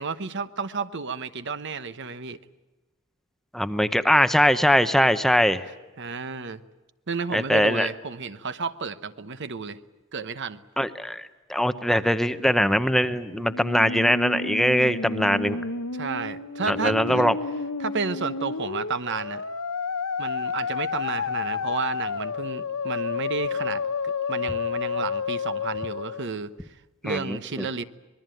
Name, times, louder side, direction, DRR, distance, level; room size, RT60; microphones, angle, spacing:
voice 1, 0.0-2.4 6.0-6.6 7.1-9.8 10.1-10.6 15.5-15.6 15.9-17.3 17.8-19.4 20.2-26.5 27.0-27.8, right 4 dB, 55° right, 12 dB, 1.0 m, -32 dB
voice 2, 3.5-5.6 7.3-7.9 10.8-15.6 16.7-17.3 27.1-27.4, equal, ahead, 11 dB, 0.8 m, -22 dB
Musical instrument, 13.3-26.3, left 5 dB, 85° left, 1.1 m, -30 dB
25.5 x 21.0 x 9.2 m, 1.1 s
head